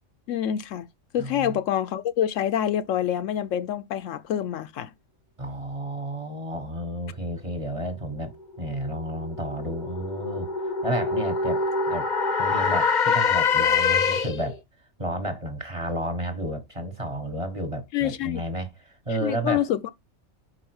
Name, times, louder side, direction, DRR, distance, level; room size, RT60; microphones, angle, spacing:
voice 1, 0.3-0.9 1.1-4.9 17.9-18.4 19.2-19.9, left 10 dB, 75° left, 0.9 m, -26 dB
voice 2, 1.2-1.6 5.4-8.3 8.6-12.1 12.4-14.6 15.0-19.7, right 1 dB, 25° right, 1.2 m, -32 dB
sound 1, 8.4-14.6, left 5 dB, 45° left, 0.7 m, -25 dB
5.4 x 4.9 x 4.7 m
omnidirectional pair, 1.4 m